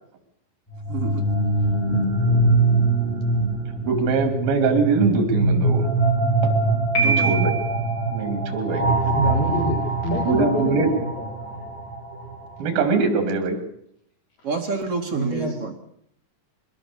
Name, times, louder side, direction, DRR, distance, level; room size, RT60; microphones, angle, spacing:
sound 1, 0.7-12.5, right 2 dB, 5° left, 6.2 m, -23 dB
voice 1, 0.9-1.2 7.0-7.4 14.4-15.7, right 5 dB, 50° right, 4 dB, 2.1 m, -28 dB
voice 2, 3.9-5.9 6.4-6.5 7.0-7.5 8.1-8.9 10.2-10.9 12.6-13.6, right 4 dB, 80° right, 8 dB, 4.6 m, -22 dB
Piano, 6.9-7.9, right 4 dB, 30° left, 8.6 m, -23 dB
voice 3, 9.1-11.7 15.1-15.6, equal, 70° left, -2 dB, 6.0 m, -27 dB
22.0 x 19.0 x 6.8 m, 0.70 s
omnidirectional pair, 4.1 m